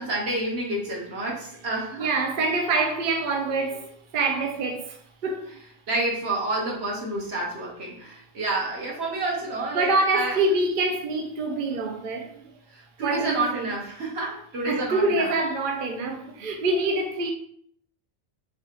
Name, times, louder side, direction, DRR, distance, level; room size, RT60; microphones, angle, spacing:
voice 1, 0.0-2.1 5.9-9.9 10.1-10.4 12.3-12.4 12.7-15.3, right 2 dB, 80° right, 1.3 m, -29 dB
voice 2, 2.0-5.5 9.7-12.3 13.0-13.7 14.7-17.3, right 2 dB, 60° right, 0.6 m, -25 dB
3.5 x 3.3 x 2.9 m
omnidirectional pair, 1.1 m